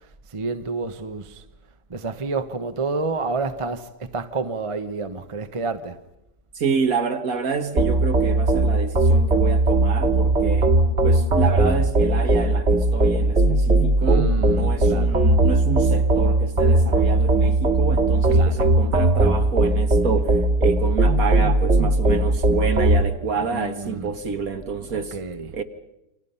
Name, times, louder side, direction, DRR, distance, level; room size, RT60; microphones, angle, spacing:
voice 1, 0.3-1.4 1.9-6.0 14.0-15.2 18.3-18.7 23.5-24.1 24.9-25.6, right 3 dB, 25° right, 0.8 m, -29 dB
voice 2, 6.6-10.8 11.0-25.2 25.5-25.6, right 5 dB, 55° right, 1.8 m, -28 dB
sound 1, 7.8-23.0, right 2 dB, 40° right, 2.5 m, -19 dB
29.0 x 25.5 x 5.6 m
omnidirectional pair, 1.8 m